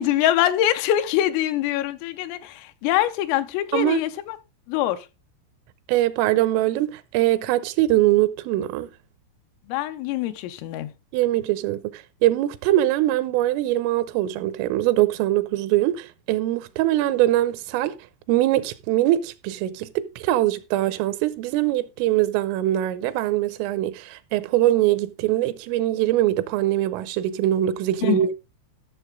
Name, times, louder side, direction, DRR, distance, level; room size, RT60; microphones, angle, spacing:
voice 1, 0.0-4.4 4.7-5.1 9.7-10.9 28.0-28.2, left 12 dB, 85° left, 3.4 m, -24 dB
voice 2, 3.7-4.0 5.9-8.9 11.1-18.0 18.3-28.4, right 14 dB, 80° right, 3.1 m, -22 dB
14.0 x 6.7 x 3.7 m
omnidirectional pair, 5.9 m